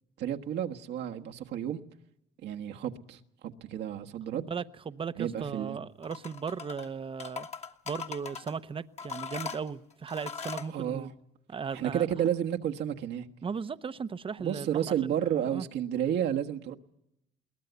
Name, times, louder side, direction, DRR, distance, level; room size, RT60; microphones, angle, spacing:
voice 1, 0.2-1.8 2.4-4.5 5.2-5.8 10.7-11.1 11.7-13.3 14.4-16.8, right 10 dB, 70° right, 1.4 m, -31 dB
voice 2, 4.3-7.5 7.9-11.1 11.5-12.1 13.4-15.7, right 6 dB, 30° right, 0.8 m, -37 dB
sound 1, 6.0-6.9 7.2-8.5 9.0-10.7, left 5 dB, 35° left, 1.6 m, -40 dB
22.0 x 18.5 x 8.1 m
cardioid pair, 95°, 18 cm